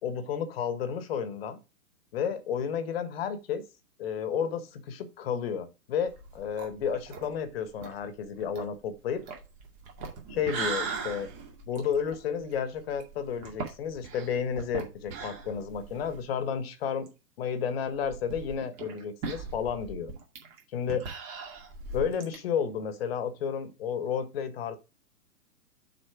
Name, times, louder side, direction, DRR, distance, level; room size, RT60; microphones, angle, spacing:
voice 1, 0.0-1.6 2.1-3.6 4.0-9.2 10.3-11.3 11.7-17.1 17.4-20.1 20.7-21.1 21.9-24.8, left 7 dB, 40° left, 10 dB, 1.5 m, -32 dB
sound 1, 6.1-16.3 16.6-16.7 17.1-17.2 17.9-22.4, right 4 dB, 25° right, 2.2 m, -39 dB
6.6 x 4.9 x 4.8 m, 0.29 s
figure-of-eight pair, 120°, 48 cm